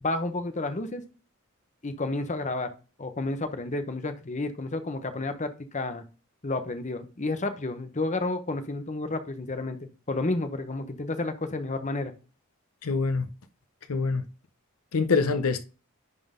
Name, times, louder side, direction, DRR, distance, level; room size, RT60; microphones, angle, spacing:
voice 1, 0.0-1.0 1.8-2.7 3.0-6.0 6.4-9.8 10.1-12.1, left 2 dB, 35° left, 0.9 m, -31 dB
voice 2, 12.8-13.3 13.9-14.2 14.9-15.6, left 4 dB, 75° left, 0.6 m, -25 dB
11.0 x 3.8 x 3.7 m
head